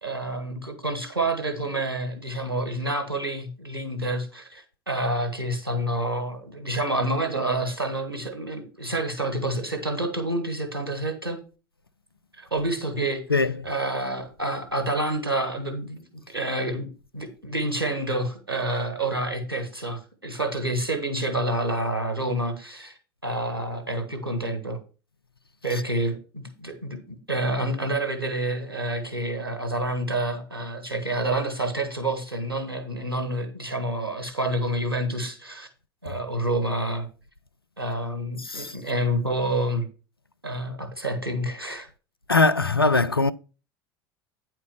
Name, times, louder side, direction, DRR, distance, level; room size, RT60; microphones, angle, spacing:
voice 1, 0.0-11.4 12.4-13.2 13.6-16.9 17.1-23.0 23.2-24.8 25.6-35.7 36.0-37.1 37.8-39.9 40.4-41.9, right 1 dB, 85° right, 1.6 m, -28 dB
voice 2, 13.3-13.7 25.7-25.8 36.1-36.2 38.4-38.8 42.3-43.3, left 3 dB, 90° left, 0.4 m, -22 dB
9.1 x 4.5 x 5.4 m
figure-of-eight pair, 70°, 12 cm